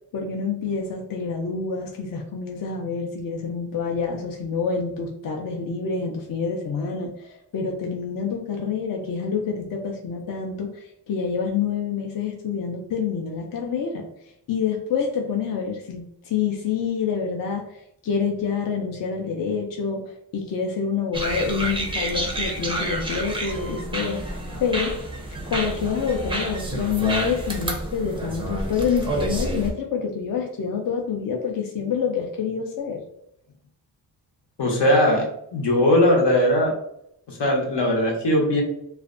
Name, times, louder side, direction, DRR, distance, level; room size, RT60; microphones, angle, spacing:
voice 1, 0.1-14.1 14.5-25.0 25.5-33.0, left 6 dB, 55° left, 1 dB, 0.4 m, -27 dB
sound 1, 21.1-29.7, right 1 dB, 15° right, 0.4 m, -29 dB
voice 2, 34.6-35.2 35.5-36.8 37.3-38.6, left 1 dB, 75° left, 0 dB, 0.8 m, -19 dB
2.5 x 2.1 x 2.4 m, 0.75 s
wide cardioid pair, 95°, 42 cm